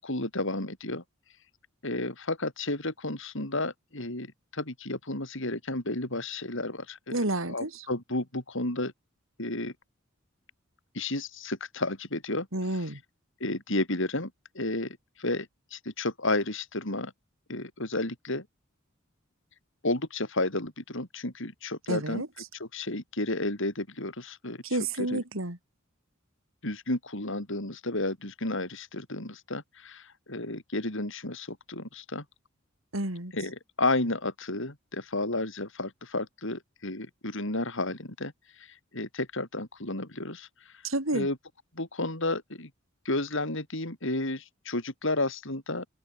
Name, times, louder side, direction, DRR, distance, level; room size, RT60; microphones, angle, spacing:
voice 1, 0.0-1.0 1.8-7.2 7.5-8.9 9.4-9.7 10.9-12.5 12.7-12.8 13.4-17.1 17.5-18.4 19.8-22.2 22.6-25.2 26.6-32.2 33.3-38.3 38.6-38.7 38.9-40.5 41.1-41.4 41.7-42.7 43.0-45.9, left 2 dB, 65° left, 6.3 m, -32 dB
voice 2, 7.1-7.9 12.5-13.0 21.9-22.3 24.6-25.6 32.9-33.3 40.8-41.3, right 1 dB, 70° right, 5.3 m, -30 dB
open air
head